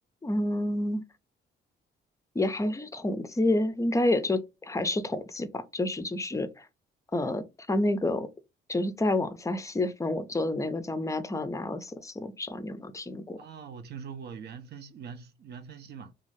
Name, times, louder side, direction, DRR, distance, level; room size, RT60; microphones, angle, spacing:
voice 1, 0.2-1.0 2.3-6.7 7.1-8.3 8.7-13.4, left 2 dB, 15° left, 0.4 m, -29 dB
voice 2, 13.4-16.1, right 6 dB, 55° right, 0.5 m, -43 dB
2.5 x 2.4 x 3.1 m
cardioid pair, 90°, 20 cm